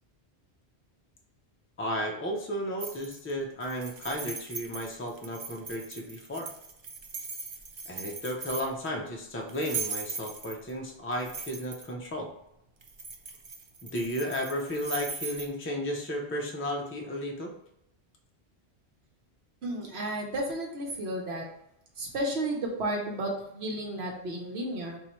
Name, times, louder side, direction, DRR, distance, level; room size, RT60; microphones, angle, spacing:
voice 1, 1.8-6.5 7.9-12.3 13.8-17.5, equal, 20° left, 1 dB, 0.4 m, -34 dB
sound 1, 2.8-3.3 3.6-8.9 9.5-10.7 11.1-11.9 12.8-15.5, right 4 dB, 50° right, 0.3 m, -39 dB
voice 2, 19.6-21.4 22.0-25.0, right 1 dB, 80° right, 1 dB, 1.1 m, -32 dB
3.0 x 2.7 x 4.3 m, 0.79 s
omnidirectional pair, 1.1 m